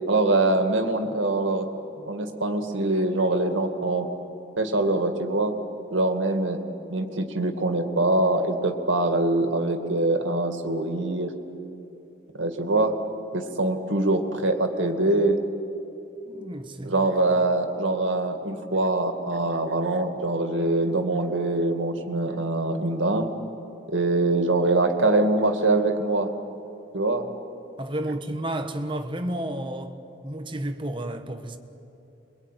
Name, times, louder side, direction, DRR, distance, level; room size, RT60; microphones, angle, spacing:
voice 1, 0.1-1.7 2.0-4.1 4.6-5.5 5.9-6.6 6.9-11.3 12.3-12.9 13.3-15.4 16.8-23.3 23.9-26.3 26.9-27.3, right 2 dB, 85° right, 2.2 m, -24 dB
voice 2, 16.3-17.0 17.3-17.4 27.8-30.0 30.2-31.6, right 1 dB, 25° right, 1.2 m, -31 dB
27.5 x 23.0 x 9.2 m
head